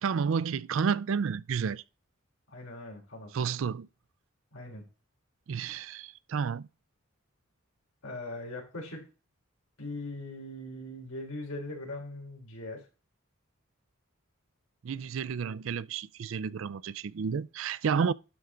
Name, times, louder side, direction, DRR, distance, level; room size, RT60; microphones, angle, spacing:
voice 1, 0.0-1.8 3.3-3.9 5.5-6.7 14.8-18.1, right 6 dB, 65° right, 0.4 m, -31 dB
voice 2, 2.5-3.3 4.5-4.8 8.0-9.0 9.8-12.8, left 2 dB, 80° left, 4.3 m, -40 dB
12.0 x 4.7 x 3.8 m
head